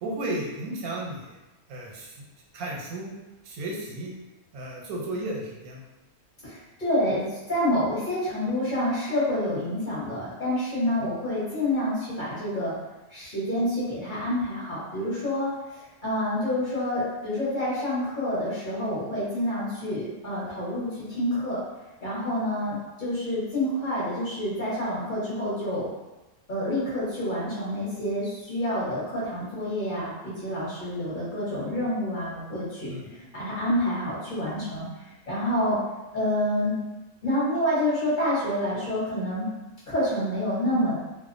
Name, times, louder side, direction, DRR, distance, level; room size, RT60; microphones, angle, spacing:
voice 1, 0.0-1.4 1.7-2.1 2.5-3.1 3.4-4.1 4.5-5.8 11.0-11.1 32.9-33.2, right 1 dB, 90° right, -2 dB, 1.1 m, -34 dB
voice 2, 6.4-12.7 13.1-21.6 22.0-25.9 26.5-35.8 36.1-36.8 37.2-39.5 39.9-41.0, left 1 dB, 40° left, -10 dB, 0.9 m, -28 dB
2.5 x 2.0 x 2.5 m, 1.1 s
omnidirectional pair, 1.5 m